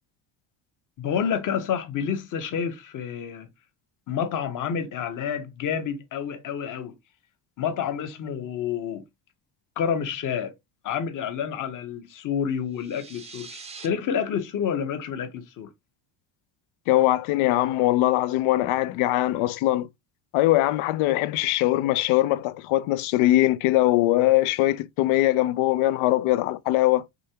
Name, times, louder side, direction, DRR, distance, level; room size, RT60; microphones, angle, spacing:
voice 1, 1.0-3.5 4.1-6.9 7.6-9.0 9.8-10.5 10.8-15.7, left 7 dB, 40° left, 0.8 m, -29 dB
sound 1, 12.7-13.9, right 4 dB, 15° right, 0.4 m, -43 dB
voice 2, 16.9-19.9 20.3-27.0, left 16 dB, 85° left, 0.6 m, -21 dB
5.2 x 3.3 x 2.8 m
cardioid pair, 165°, 48 cm